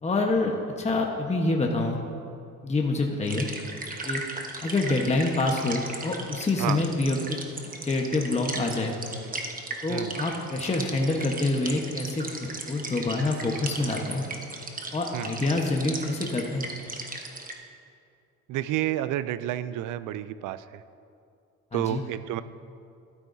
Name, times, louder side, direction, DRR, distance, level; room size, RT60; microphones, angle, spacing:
voice 1, 0.0-2.0 2.6-3.5 4.0-4.2 4.6-7.4 7.9-9.0 9.8-14.2 14.9-16.7 21.7-22.0, left 2 dB, 20° left, 1 dB, 1.1 m, -26 dB
sound 1, 3.2-17.5, right 3 dB, 30° right, 1.2 m, -37 dB
voice 2, 18.5-20.8 21.7-22.4, right 13 dB, 85° right, 14 dB, 0.5 m, -30 dB
13.0 x 12.5 x 2.7 m, 2.4 s
cardioid pair, 90°, 30 cm